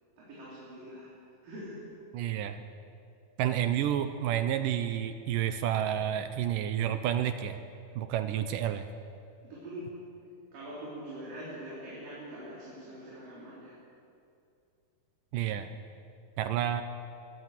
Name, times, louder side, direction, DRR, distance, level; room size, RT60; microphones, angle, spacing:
voice 1, 0.2-1.1 1.4-1.9 9.4-10.0 10.5-13.8, equal, 60° right, -7 dB, 5.5 m, -43 dB
voice 2, 2.1-2.6 3.4-7.6 8.0-8.9 15.3-15.7 16.4-16.8, right 10 dB, 75° right, 10 dB, 2.1 m, -30 dB
23.5 x 15.5 x 7.5 m, 2.5 s
omnidirectional pair, 4.5 m